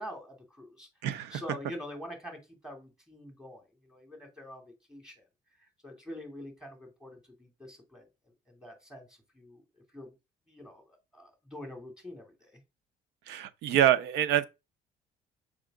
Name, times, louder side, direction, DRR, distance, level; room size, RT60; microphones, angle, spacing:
voice 1, 0.0-0.9 1.3-4.6 4.9-5.2 5.6-8.0 8.5-9.6 9.9-10.1 10.5-12.6, left 1 dB, 5° right, 2.9 m, -45 dB
voice 2, 1.0-1.4 13.3-14.4, right 11 dB, 85° right, 0.8 m, -26 dB
6.7 x 5.0 x 3.7 m
cardioid pair, 110°, 17 cm